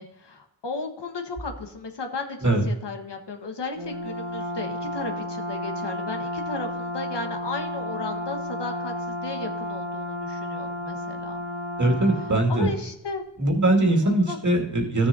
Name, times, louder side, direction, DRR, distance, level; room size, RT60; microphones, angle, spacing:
voice 1, 0.0-11.4 12.3-13.2 14.0-14.4, left 3 dB, 65° left, 5 dB, 1.4 m, -35 dB
Brass instrument, 3.8-12.5, left 1 dB, 75° right, 2.6 m, -32 dB
voice 2, 11.8-12.7 13.4-15.1, right 1 dB, 40° right, 2 dB, 2.2 m, -21 dB
14.5 x 7.0 x 2.7 m, 0.86 s
wide cardioid pair, 85°, 45 cm